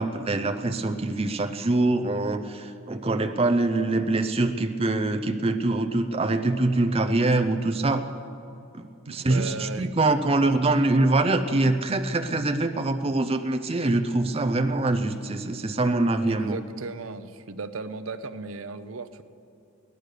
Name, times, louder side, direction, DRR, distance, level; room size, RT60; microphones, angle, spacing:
voice 1, 0.0-8.0 8.7-8.8 9.1-16.6, right 2 dB, 25° right, 7 dB, 0.6 m, -24 dB
voice 2, 9.1-9.9 16.3-19.2, right 4 dB, 70° right, 12 dB, 0.6 m, -36 dB
17.0 x 11.0 x 6.6 m, 2.7 s
head